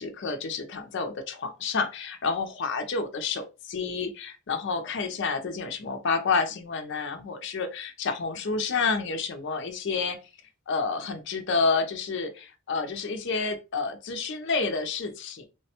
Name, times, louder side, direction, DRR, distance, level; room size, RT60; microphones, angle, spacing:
voice 1, 0.0-10.2 10.7-15.4, left 4 dB, 55° left, 6 dB, 0.4 m, -29 dB
3.3 x 2.1 x 2.7 m, 0.29 s
head